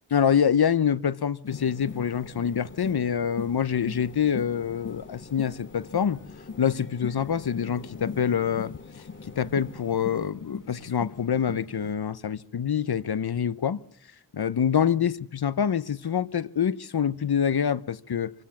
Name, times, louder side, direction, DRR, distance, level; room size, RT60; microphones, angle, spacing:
voice 1, 0.1-6.2 6.6-8.7 9.0-13.8 14.3-18.3, left 8 dB, 60° left, 0.8 m, -26 dB
sound 1, 1.4-11.9, left 5 dB, 45° left, 1.5 m, -41 dB
sound 2, 1.5-10.3, left 3 dB, 25° left, 1.6 m, -50 dB
25.0 x 16.5 x 7.2 m
wide cardioid pair, 65°, 42 cm